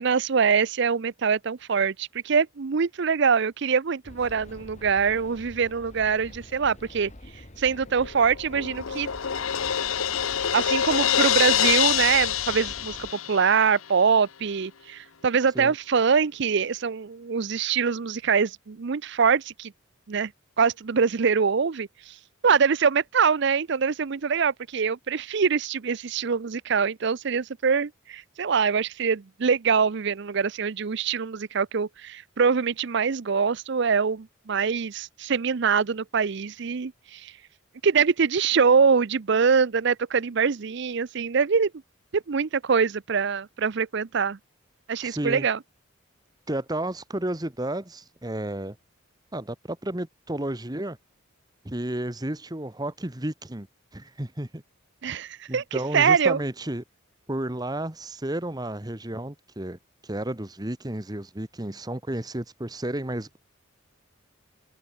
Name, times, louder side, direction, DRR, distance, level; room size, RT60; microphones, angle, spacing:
voice 1, 0.0-7.1 7.6-9.1 10.5-19.7 20.1-20.3 20.6-22.1 22.4-37.3 37.8-41.7 42.1-44.4 44.9-45.6 55.0-56.4, right 6 dB, 60° right, 0.5 m, -24 dB
sound 1, 4.0-13.1, left 1 dB, 35° left, 2.4 m, -46 dB
Crash cymbal, 8.0-13.7, left 9 dB, 90° left, 0.9 m, -25 dB
voice 2, 45.0-45.5 46.5-48.8 49.3-51.0 51.6-53.7 53.9-54.6 55.5-56.8 57.3-59.8 60.0-63.4, right 1 dB, 20° right, 1.4 m, -32 dB
open air
head